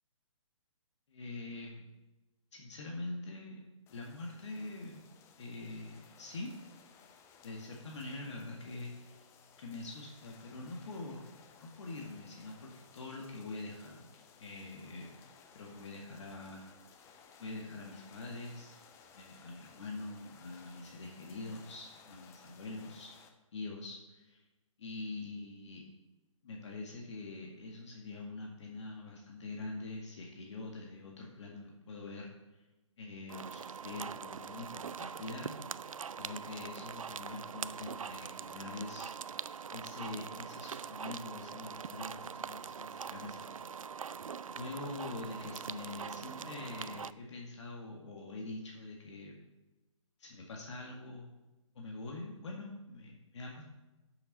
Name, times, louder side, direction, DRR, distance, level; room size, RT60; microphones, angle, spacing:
voice 1, 1.1-1.7 2.5-3.6 3.9-5.0 5.4-6.5 7.4-9.2 9.6-11.3 11.6-14.0 14.4-15.1 15.5-17.1 17.4-18.7 19.1-23.2 23.5-24.4 24.8-25.8 26.4-32.3 33.0-35.6 36.2-39.4 39.7-43.6 44.5-49.3 50.2-51.3 51.8-53.6, left 2 dB, 60° left, -1 dB, 1.9 m, -44 dB
sound 1, 3.9-23.3, left 6 dB, 15° left, 0.7 m, -60 dB
sound 2, 33.3-47.1, right 6 dB, 85° right, 0.4 m, -43 dB
12.0 x 7.1 x 4.2 m, 1.1 s
hypercardioid pair, 140°, 17 cm